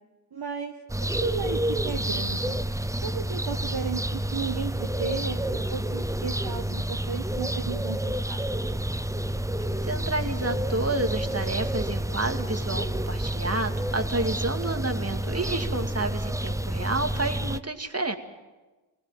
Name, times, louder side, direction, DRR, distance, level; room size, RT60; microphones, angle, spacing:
voice 1, 0.3-0.7 1.2-2.6 3.0-8.7, right 6 dB, 50° right, 3 dB, 1.4 m, -34 dB
sound 1, 0.9-17.6, right 1 dB, 5° right, 0.7 m, -29 dB
voice 2, 9.8-18.2, right 2 dB, 30° right, 6 dB, 2.4 m, -30 dB
22.5 x 18.0 x 9.0 m, 1.2 s
cardioid pair, 45°, 47 cm